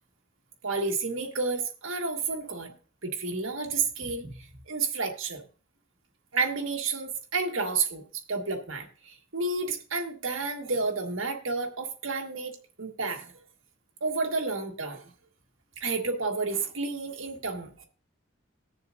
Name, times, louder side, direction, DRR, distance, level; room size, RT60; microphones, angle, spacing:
voice 1, 0.6-2.7 3.0-4.4 4.7-5.4 6.3-8.0 8.3-12.5 12.8-13.3 14.0-15.0 15.8-17.8, right 4 dB, 85° right, 2 dB, 1.7 m, -30 dB
19.5 x 7.0 x 2.6 m, 0.39 s
head